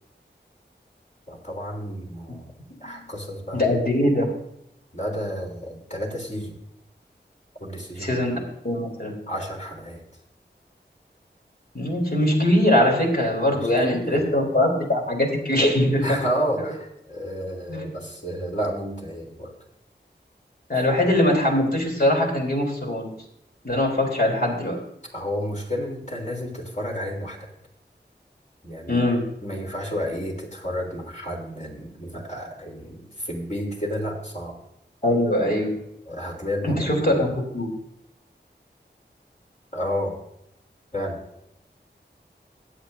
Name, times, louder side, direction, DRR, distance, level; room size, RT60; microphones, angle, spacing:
voice 1, 1.3-2.5 2.8-3.7 4.9-6.6 7.6-8.2 9.3-10.0 13.5-14.2 16.0-19.5 25.1-27.5 28.6-29.0 29.4-34.6 36.1-36.9 39.7-40.2 40.9-41.2, equal, 40° left, -1 dB, 3.4 m, -31 dB
voice 2, 3.5-4.3 8.0-8.4 8.6-9.2 11.7-16.2 16.6-16.7 17.7-17.9 20.7-23.1 23.6-24.8 28.9-29.2 35.0-35.7 36.6-37.7, left 1 dB, 55° left, -1 dB, 3.5 m, -22 dB
21.5 x 8.0 x 2.7 m, 0.80 s
wide cardioid pair, 55°, 19 cm